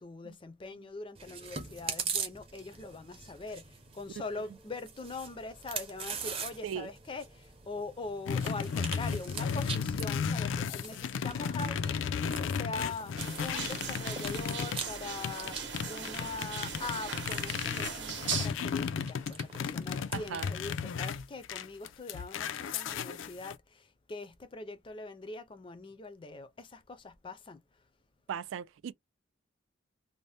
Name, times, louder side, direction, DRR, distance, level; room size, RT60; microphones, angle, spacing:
voice 1, 0.0-27.6, left 3 dB, 25° left, 0.4 m, -42 dB
Chewing mastication, 1.2-20.7, right 6 dB, 30° right, 0.6 m, -43 dB
sound 1, 8.3-14.8 15.2-23.5, left 6 dB, 90° left, 0.4 m, -34 dB
sound 2, 13.2-18.5, right 6 dB, 65° right, 0.8 m, -39 dB
voice 2, 20.1-20.5 28.3-28.9, right 8 dB, 90° right, 0.3 m, -38 dB
2.7 x 2.0 x 3.2 m
head